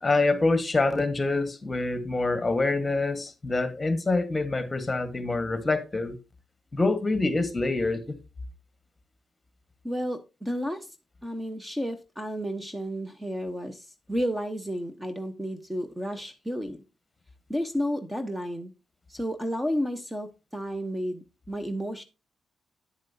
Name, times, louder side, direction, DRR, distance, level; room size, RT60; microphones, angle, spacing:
voice 1, 0.0-6.2 6.7-8.1, left 3 dB, 25° left, 1.5 m, -26 dB
voice 2, 9.8-10.9 11.2-16.8 17.5-18.7 19.1-22.0, equal, 10° right, 1.0 m, -32 dB
9.5 x 7.5 x 2.8 m
cardioid pair, 70°, 0 cm